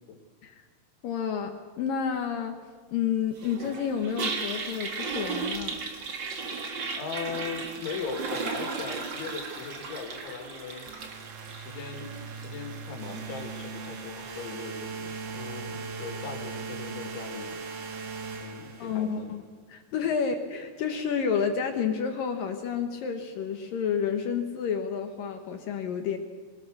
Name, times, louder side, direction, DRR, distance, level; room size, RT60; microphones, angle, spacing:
voice 1, 1.0-2.6 2.9-5.8 18.8-19.4 19.7-26.2, left 7 dB, 65° left, 5 dB, 2.3 m, -30 dB
Toilet flush, 3.4-18.6, right 4 dB, 60° right, 1.2 m, -37 dB
voice 2, 6.9-10.9 11.5-17.6 17.9-19.3, left 5 dB, 85° left, 4 dB, 4.8 m, -39 dB
sound 1, 10.9-19.2, right 4 dB, 90° right, 4.6 m, -39 dB
24.5 x 18.5 x 6.6 m, 1.5 s
omnidirectional pair, 5.2 m